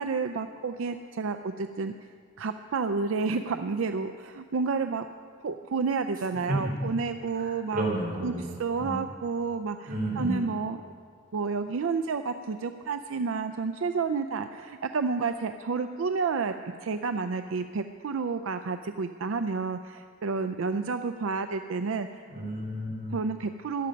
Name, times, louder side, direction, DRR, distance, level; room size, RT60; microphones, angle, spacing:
voice 1, 0.0-1.9 2.4-5.1 5.4-7.9 8.2-8.3 8.6-10.8 11.3-16.5 16.8-22.2 23.1-23.9, right 4 dB, 80° right, 8 dB, 0.4 m, -30 dB
voice 2, 7.3-8.5 8.8-9.0 9.9-10.4 22.3-23.2, right 1 dB, 45° right, -3 dB, 4.1 m, -31 dB
14.5 x 11.5 x 5.2 m, 2.2 s
head